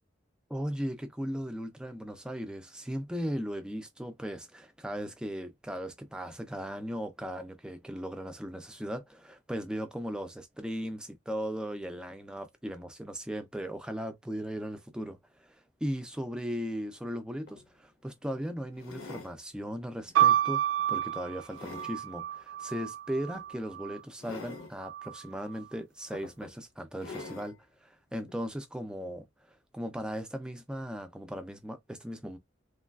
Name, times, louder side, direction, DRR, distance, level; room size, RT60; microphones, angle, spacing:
voice 1, 0.5-15.6 15.8-27.6 27.8-29.3 29.7-32.4, equal, 5° right, 0.3 m, -37 dB
sound 1, 17.1-17.2 17.5-17.7 18.8-19.4 20.0-20.2 20.8-22.0 23.3-23.5 24.2-24.7 25.6-25.7 26.1-26.6 27.0-27.5 28.3-28.4, left 3 dB, 80° left, 0.6 m, -45 dB
sound 2, 20.1-24.0 24.8-25.5, right 11 dB, 80° right, 0.4 m, -29 dB
3.1 x 2.3 x 2.2 m
head